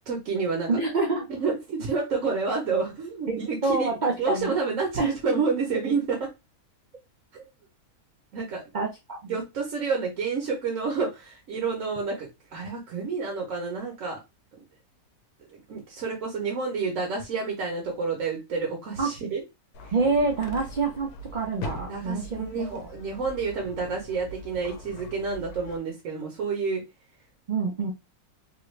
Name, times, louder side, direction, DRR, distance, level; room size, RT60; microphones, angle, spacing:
voice 1, 0.1-0.8 1.3-3.9 4.2-6.3 7.3-7.5 8.3-8.6 9.3-14.2 15.5-19.4 19.8-19.9 21.9-26.8, right 4 dB, 60° right, -1 dB, 1.2 m, -29 dB
voice 2, 0.7-1.3 3.3-4.6 5.0-5.2 8.7-9.4 19.0-19.1 19.9-22.8 27.5-27.9, right 3 dB, 90° right, 1 dB, 0.4 m, -27 dB
sound 1, 19.7-25.8, left 1 dB, 85° left, 1.1 m, -41 dB
3.0 x 2.4 x 3.1 m, 0.24 s
omnidirectional pair, 1.6 m